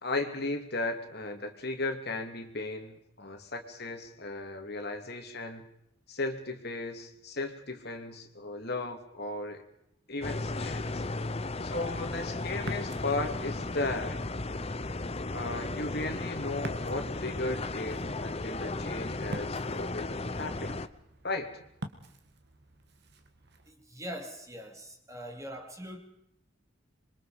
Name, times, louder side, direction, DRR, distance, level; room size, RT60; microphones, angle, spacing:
voice 1, 0.0-5.6 6.1-9.6 10.1-11.0 11.6-14.2 15.3-20.8 21.2-21.5, left 2 dB, 50° left, 2.7 m, -36 dB
sound 1, 10.2-20.9, left 2 dB, 30° left, 0.8 m, -35 dB
Ocean, 12.6-23.7, right 1 dB, 55° right, 2.0 m, -48 dB
voice 2, 23.7-26.0, equal, 15° right, 2.7 m, -42 dB
27.0 x 23.5 x 5.2 m
head